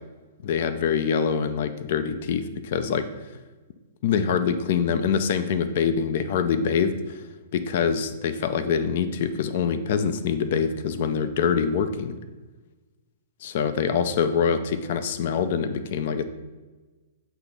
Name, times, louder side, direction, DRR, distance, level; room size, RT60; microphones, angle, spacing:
voice 1, 0.4-3.1 4.0-6.9 7.5-12.2 13.4-16.2, left 6 dB, 60° left, 11 dB, 0.5 m, -24 dB
7.9 x 3.0 x 5.2 m, 1.3 s
hypercardioid pair, 125°, 0 cm